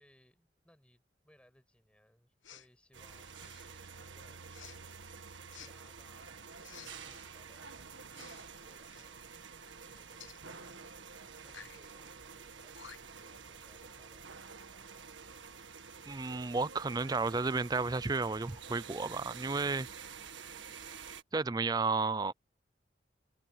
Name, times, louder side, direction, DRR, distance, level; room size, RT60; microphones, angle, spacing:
voice 1, 0.0-4.4 5.4-6.3 6.9-9.3 9.8-10.9 11.4-15.0, equal, 5° left, 7.0 m, -66 dB
Respiratory sounds, 2.4-2.7 3.3-3.8 4.5-4.8 5.5-5.7 6.6-7.3 8.1-8.5 8.8-9.1 10.2-10.4 11.4-11.8 12.5-12.6 12.7-13.2, left 8 dB, 80° left, 1.4 m, -53 dB
sound 1, 2.9-21.2, right 6 dB, 80° right, 1.7 m, -49 dB
voice 2, 16.1-19.9 21.3-22.3, right 4 dB, 20° right, 0.4 m, -32 dB
open air
head